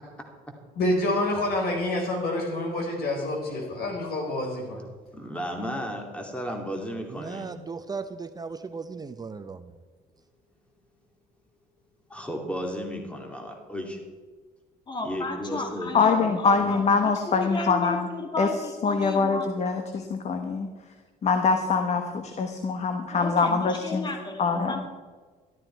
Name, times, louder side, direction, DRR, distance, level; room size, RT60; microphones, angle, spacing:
voice 1, 0.8-4.8, left 1 dB, 65° left, 1 dB, 4.5 m, -27 dB
voice 2, 5.1-7.5 12.1-14.0 15.0-16.7, equal, 5° left, 2 dB, 2.5 m, -34 dB
voice 3, 7.1-9.7, right 4 dB, 25° right, 9 dB, 0.6 m, -37 dB
voice 4, 14.9-19.5 23.1-24.9, left 2 dB, 25° left, 3 dB, 2.3 m, -34 dB
voice 5, 15.9-18.1 18.4-18.5 18.8-20.7 21.2-24.1 24.4-24.9, left 5 dB, 40° left, 6 dB, 1.1 m, -24 dB
13.0 x 12.5 x 4.5 m, 1.4 s
cardioid pair, 110°, 17 cm